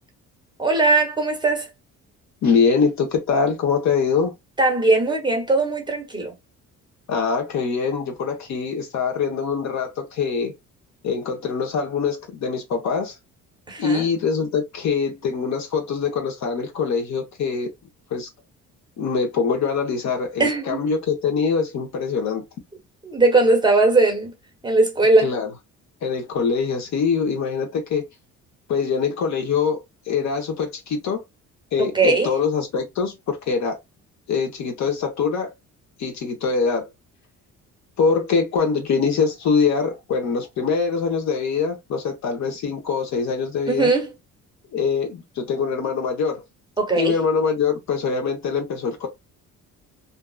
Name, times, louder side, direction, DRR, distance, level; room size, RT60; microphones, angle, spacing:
voice 1, 0.6-1.7 4.6-6.4 13.7-14.1 20.4-20.8 23.0-24.3 24.6-25.3 31.8-32.3 43.7-44.1 46.8-47.2, right 3 dB, 15° right, 0.9 m, -19 dB
voice 2, 2.4-4.3 7.1-10.5 11.0-13.2 13.8-17.7 18.1-18.3 19.0-22.5 25.2-25.5 26.0-28.1 28.7-31.2 31.7-33.8 34.3-35.5 36.0-36.9 38.0-43.9 44.7-46.4 47.0-49.1, left 5 dB, 65° left, 0.9 m, -23 dB
2.7 x 2.4 x 2.3 m
cardioid pair, 105°, 30 cm